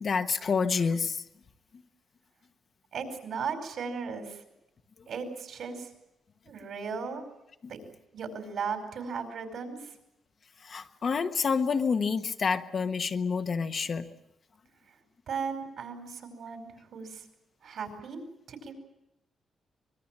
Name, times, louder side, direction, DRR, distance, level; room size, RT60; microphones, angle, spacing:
voice 1, 0.0-1.2 10.6-14.0, left 5 dB, 40° left, 7 dB, 1.2 m, -28 dB
voice 2, 2.9-4.4 5.1-5.9 6.4-7.2 7.7-7.8 8.1-9.9 15.3-17.2 17.6-18.2 18.5-18.7, right 5 dB, 65° right, 6 dB, 5.0 m, -36 dB
24.5 x 21.5 x 7.5 m, 0.87 s
wide cardioid pair, 150°, 0 cm